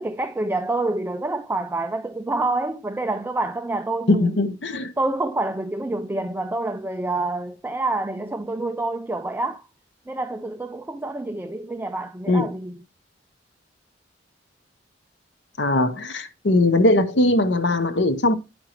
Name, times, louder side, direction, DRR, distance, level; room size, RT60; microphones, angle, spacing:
voice 1, 0.0-4.6 5.0-9.7 10.1-12.8, right 2 dB, 10° right, 0.3 m, -27 dB
voice 2, 4.1-4.9 12.3-12.5 15.6-18.3, left 2 dB, 75° left, 0.8 m, -20 dB
10.0 x 5.1 x 2.9 m
head